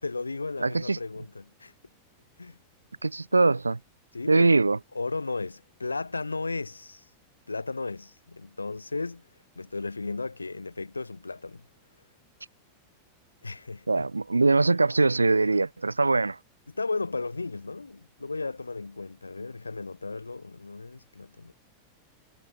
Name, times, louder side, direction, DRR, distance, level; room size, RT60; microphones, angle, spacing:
voice 1, 0.0-1.7 2.4-2.6 4.1-4.5 4.9-7.0 7.5-9.3 9.6-11.6 13.4-14.1 16.7-21.5, left 3 dB, 80° left, 5.7 m, -35 dB
voice 2, 0.6-1.0 3.0-3.8 4.3-4.8 13.9-16.4, right 3 dB, 80° right, 2.1 m, -22 dB
figure-of-eight pair, 90°, 0 cm